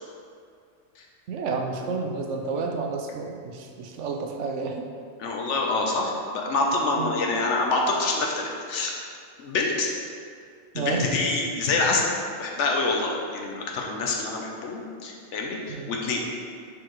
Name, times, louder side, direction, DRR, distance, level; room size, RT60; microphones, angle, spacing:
voice 1, 1.3-4.8 7.0-7.1 10.7-11.0 15.7-15.9, right 4 dB, 70° right, 3 dB, 0.9 m, -30 dB
voice 2, 5.2-8.9 9.4-9.9 10.7-12.0 12.4-16.2, left 3 dB, 65° left, 0 dB, 1.1 m, -26 dB
6.4 x 4.8 x 3.1 m, 2.3 s
omnidirectional pair, 1.3 m